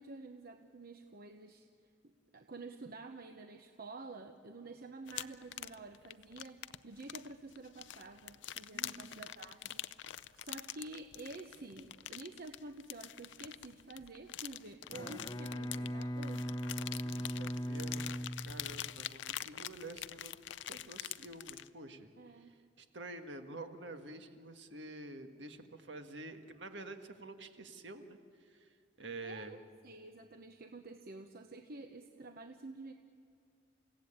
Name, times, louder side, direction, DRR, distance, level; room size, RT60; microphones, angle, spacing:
voice 1, 0.0-1.7 2.0-9.8 10.3-16.5 22.2-22.5 29.2-29.6 29.8-32.9, right 3 dB, 55° right, 6 dB, 1.0 m, -49 dB
sound 1, 5.1-21.7, left 12 dB, 75° left, 0.6 m, -45 dB
voice 2, 8.7-9.3 17.0-18.1 18.4-29.6, right 2 dB, 70° right, 7 dB, 1.7 m, -49 dB
Bowed string instrument, 14.8-19.2, equal, 20° left, 0.8 m, -39 dB
29.5 x 16.5 x 8.9 m, 2.4 s
head